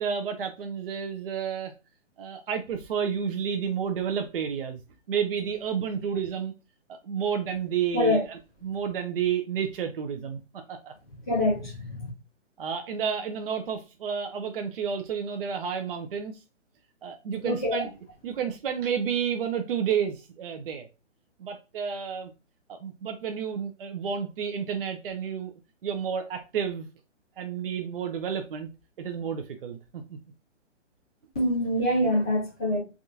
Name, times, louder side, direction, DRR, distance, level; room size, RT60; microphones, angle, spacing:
voice 1, 0.0-1.7 2.2-4.8 5.1-6.5 6.9-10.4 10.7-10.9 12.6-16.3 17.0-17.9 18.2-20.9 21.4-22.3 22.7-25.5 25.8-26.9 27.4-28.7 29.0-29.8 30.1-30.2, right 7 dB, 50° right, 0.5 m, -30 dB
voice 2, 11.3-12.0 17.4-17.9 31.3-32.8, left 1 dB, 5° left, 0.4 m, -25 dB
3.4 x 2.4 x 2.7 m
hypercardioid pair, 145°, 37 cm